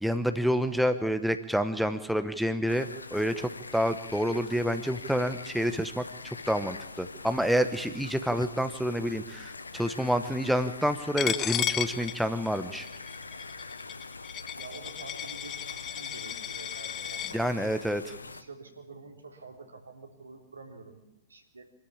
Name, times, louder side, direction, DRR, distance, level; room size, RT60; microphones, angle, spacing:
voice 1, 0.0-12.9 17.3-18.1, equal, ahead, 9 dB, 1.0 m, -28 dB
sound 1, 2.7-18.4, left 3 dB, 80° left, 1.0 m, -44 dB
Coin (dropping), 11.2-17.3, left 11 dB, 25° left, 0.7 m, -34 dB
voice 2, 14.6-17.7 18.0-21.7, right 3 dB, 75° right, 2 dB, 3.7 m, -48 dB
24.5 x 13.0 x 8.7 m, 0.94 s
figure-of-eight pair, 110°, 0 cm